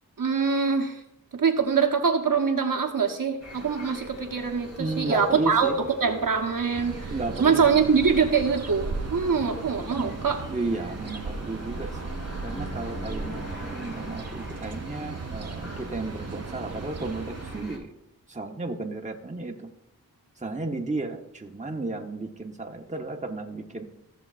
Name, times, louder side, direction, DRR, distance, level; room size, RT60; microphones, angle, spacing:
voice 1, 0.2-1.0 1.3-5.7 6.0-7.1 7.4-10.4, right 5 dB, 70° right, 2 dB, 1.3 m, -24 dB
sound 1, 3.4-17.8, left 1 dB, 50° left, 3.5 m, -42 dB
voice 2, 4.8-5.8 7.1-7.9 9.9-10.2 10.5-12.1 12.4-17.9 18.3-19.7 20.4-23.8, right 2 dB, 20° right, 2 dB, 1.1 m, -33 dB
sound 2, 6.7-17.6, right 4 dB, 45° right, 0.7 m, -37 dB
15.5 x 6.8 x 2.5 m, 0.82 s
cardioid pair, 45°, 34 cm